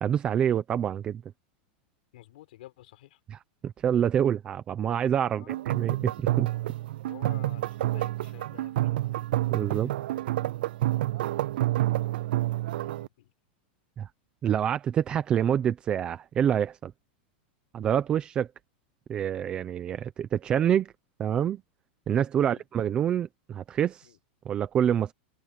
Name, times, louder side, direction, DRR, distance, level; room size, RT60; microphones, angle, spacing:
voice 1, 0.0-1.2 3.3-6.5 9.5-9.9 14.0-14.1 14.4-16.9 17.7-18.5 19.1-20.9 21.2-21.6 22.1-24.1 24.4-25.1, right 9 dB, 15° right, 0.7 m, -27 dB
voice 2, 2.1-3.2 5.3-5.6 7.0-9.2 11.8-12.3 12.7-13.3 22.4-22.6 24.0-24.2, left 15 dB, 60° left, 4.9 m, -51 dB
sound 1, 5.5-13.1, right 15 dB, 65° right, 0.3 m, -29 dB
open air
supercardioid pair, 180°, 6 cm